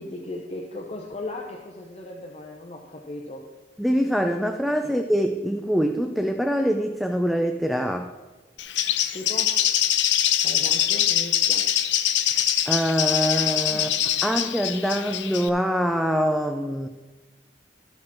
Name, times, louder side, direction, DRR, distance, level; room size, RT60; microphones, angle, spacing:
voice 1, 0.0-3.5 4.8-4.9 9.1-9.6 10.4-11.7 13.7-13.9, left 2 dB, 35° left, 0 dB, 0.8 m, -37 dB
voice 2, 3.8-8.1 12.7-13.9 14.2-16.9, equal, ahead, 5 dB, 0.4 m, -24 dB
Bird, 8.6-15.5, left 11 dB, 90° left, 0.6 m, -23 dB
13.5 x 6.0 x 4.3 m, 1.2 s
head